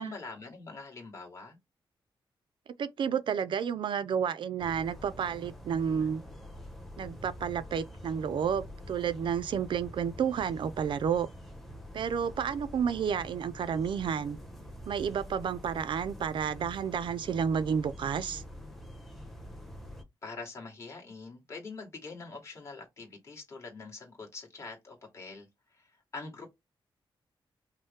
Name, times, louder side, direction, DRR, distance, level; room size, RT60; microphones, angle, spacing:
voice 1, 0.0-1.6 20.2-26.5, left 3 dB, 30° left, 1.9 m, -44 dB
voice 2, 2.8-6.2 7.0-11.3 11.9-14.4 14.9-18.4, right 7 dB, 65° right, 0.5 m, -31 dB
sound 1, 4.6-20.0, equal, ahead, 0.9 m, -46 dB
5.3 x 2.1 x 3.6 m
wide cardioid pair, 160°, 9 cm